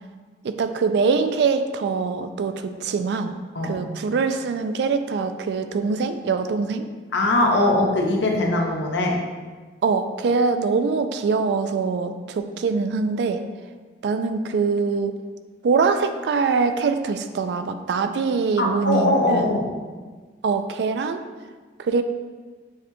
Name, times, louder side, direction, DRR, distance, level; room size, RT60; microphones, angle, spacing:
voice 1, 0.4-3.4 3.6-6.9 9.8-13.4 14.0-15.1 15.6-19.6 20.4-21.2 21.8-22.0, right 4 dB, 70° right, 9 dB, 0.3 m, -23 dB
voice 2, 7.1-9.2 18.6-19.7, left 2 dB, 80° left, 0 dB, 0.7 m, -21 dB
7.0 x 3.0 x 2.2 m, 1.4 s
head